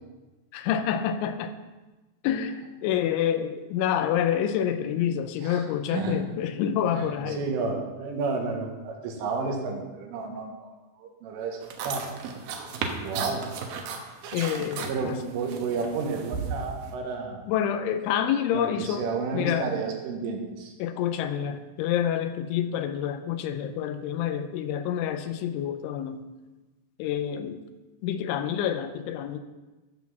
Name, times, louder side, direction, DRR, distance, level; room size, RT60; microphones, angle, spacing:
voice 1, 0.5-1.5 2.2-7.4 14.3-15.2 17.5-19.1 19.3-19.7 20.8-26.3 27.0-27.6 28.0-29.4, left 9 dB, 80° left, 9 dB, 3.1 m, -28 dB
voice 2, 5.9-6.2 6.9-10.7 11.0-12.1 13.0-13.5 14.9-17.4 18.5-20.7, right 4 dB, 85° right, 1 dB, 4.2 m, -31 dB
sound 1, 11.6-16.9, right 5 dB, 70° right, 2.5 m, -35 dB
13.5 x 6.1 x 7.3 m, 1.2 s
omnidirectional pair, 5.6 m